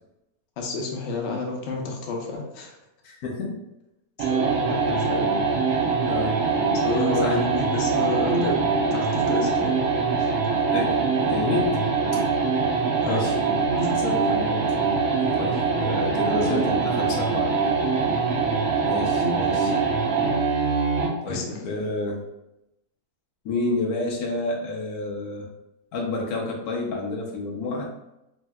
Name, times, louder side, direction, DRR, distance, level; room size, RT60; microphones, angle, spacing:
voice 1, 0.6-2.8 4.3-5.3 6.8-8.6 8.9-9.7 10.2-10.3 13.0-13.2 16.3-16.7 21.2-21.6, left 3 dB, 60° left, 0 dB, 0.8 m, -30 dB
voice 2, 3.0-3.6 6.1-6.3 7.2-7.4 10.7-11.8 12.1-12.2 13.0-13.4 13.8-14.7 15.4-17.5 18.9-19.8 21.2-22.2 23.4-25.5 25.9-27.9, left 2 dB, 85° left, -1 dB, 1.2 m, -29 dB
sound 1, 4.2-21.2, right 4 dB, 65° right, 0.8 m, -23 dB
3.1 x 2.7 x 2.2 m, 0.89 s
omnidirectional pair, 1.6 m